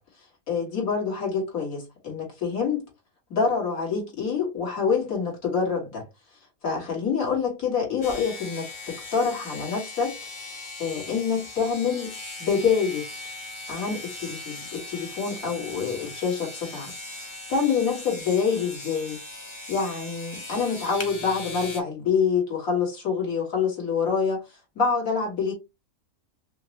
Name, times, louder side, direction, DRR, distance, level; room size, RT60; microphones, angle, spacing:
voice 1, 0.5-2.8 3.3-6.1 6.6-10.2 10.4-12.1 12.4-13.2 13.7-16.9 17.2-19.2 19.7-24.4 24.8-25.5, left 5 dB, 80° left, 2.2 m, -26 dB
sound 1, 8.0-21.8, left 2 dB, 25° left, 0.7 m, -39 dB
5.5 x 2.1 x 2.9 m
omnidirectional pair, 1.5 m